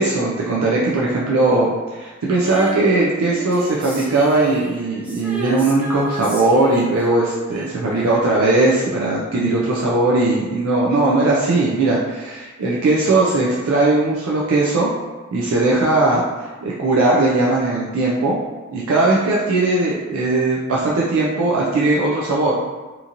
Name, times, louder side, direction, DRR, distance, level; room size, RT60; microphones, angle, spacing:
voice 1, 0.0-14.9 15.3-16.2 16.6-18.4 18.7-22.5, right 2 dB, 75° right, -5 dB, 0.4 m, -18 dB
Female singing, 2.4-9.0 9.3-9.4, equal, 5° right, 0.4 m, -34 dB
2.9 x 2.6 x 2.5 m, 1.3 s
head